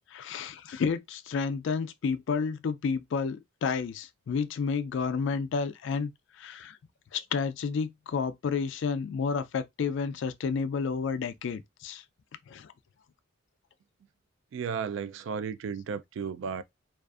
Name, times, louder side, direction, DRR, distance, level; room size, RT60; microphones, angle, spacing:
voice 1, 0.1-6.1 6.4-6.8 7.1-12.0 12.5-12.7, left 5 dB, 60° left, 0.3 m, -31 dB
voice 2, 14.5-16.6, right 6 dB, 65° right, 0.3 m, -34 dB
2.4 x 2.3 x 2.3 m
head